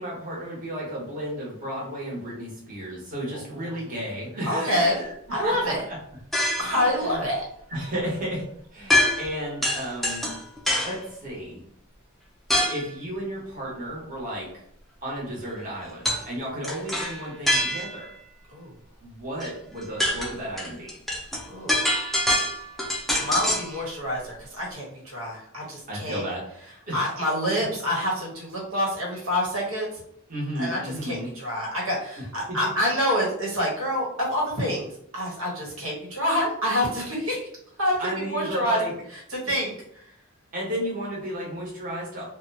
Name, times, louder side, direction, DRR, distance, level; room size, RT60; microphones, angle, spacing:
voice 1, 0.0-6.0 6.6-7.3 7.7-8.5 8.7-10.3 10.8-11.6 12.7-14.6 15.0-18.1 19.0-21.0 25.9-26.4 26.9-27.1 27.6-27.7 30.3-31.3 32.5-32.6 38.0-38.9 40.5-42.2, equal, 40° right, -4 dB, 1.1 m, -33 dB
voice 2, 3.3-3.7 4.5-5.0 5.3-5.8 6.6-7.4 18.5-18.7 21.5-22.0 23.2-26.2 26.9-29.9 30.6-34.9 35.1-37.5 37.8-38.0 38.3-38.8 39.3-39.7, equal, 90° right, -2 dB, 1.2 m, -27 dB
sound 1, 6.3-6.8 8.9-9.4 9.6-11.0 12.5-12.9 16.1-16.3 16.6-18.1 19.4-19.5 19.8-23.7, left 1 dB, ahead, 0.4 m, -25 dB
2.8 x 2.2 x 2.7 m, 0.69 s
head